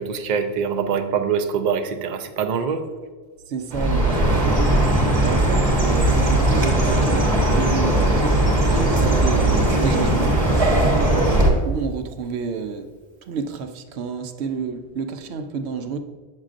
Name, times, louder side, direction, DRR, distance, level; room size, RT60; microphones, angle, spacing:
voice 1, 0.0-2.9 11.2-11.6, right 6 dB, 55° right, 0.6 m, -24 dB
voice 2, 3.5-8.4 8.7-12.9 13.2-16.0, right 5 dB, 80° right, 0.9 m, -30 dB
Chirp tweet, 3.7-11.5, right 1 dB, 35° right, 1.2 m, -18 dB
7.5 x 6.5 x 2.5 m
omnidirectional pair, 1.1 m